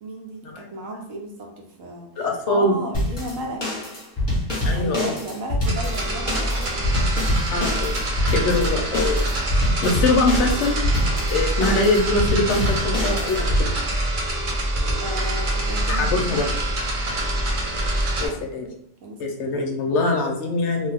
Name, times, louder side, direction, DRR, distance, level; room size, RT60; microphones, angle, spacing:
voice 1, 0.0-3.6 4.7-7.1 8.6-8.7 15.0-16.2 18.2-18.4 19.0-19.5, right 2 dB, 75° right, 1 dB, 1.1 m, -34 dB
voice 2, 2.2-2.8 4.6-5.1 7.5-8.0 8.3-9.2 9.8-10.8 11.3-13.7 15.9-16.5 18.2-18.7 19.2-20.9, left 2 dB, 65° left, 2 dB, 0.8 m, -23 dB
sound 1, 2.9-13.6, left 1 dB, 20° left, 0.8 m, -26 dB
sound 2, 5.6-18.3, right 1 dB, 50° right, 0.6 m, -25 dB
2.8 x 2.2 x 3.3 m, 0.72 s
omnidirectional pair, 1.4 m